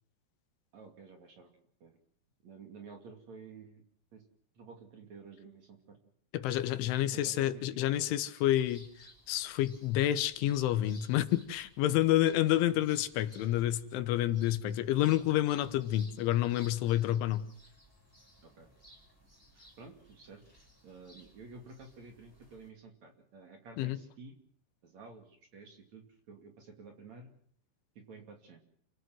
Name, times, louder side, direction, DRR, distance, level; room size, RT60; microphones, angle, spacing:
voice 1, 0.7-1.5 1.8-2.0 2.4-3.8 4.1-4.2 4.5-6.0 7.1-7.7 18.4-18.7 19.5-20.4 20.8-24.3 24.8-27.3 27.9-28.6, right 4 dB, 45° right, 4 dB, 3.1 m, -52 dB
voice 2, 6.3-8.9 9.3-17.5 23.8-24.0, left 13 dB, 85° left, 11 dB, 3.6 m, -29 dB
sound 1, 8.6-22.7, equal, 5° right, 5.8 m, -60 dB
28.5 x 16.5 x 7.8 m, 0.62 s
omnidirectional pair, 5.4 m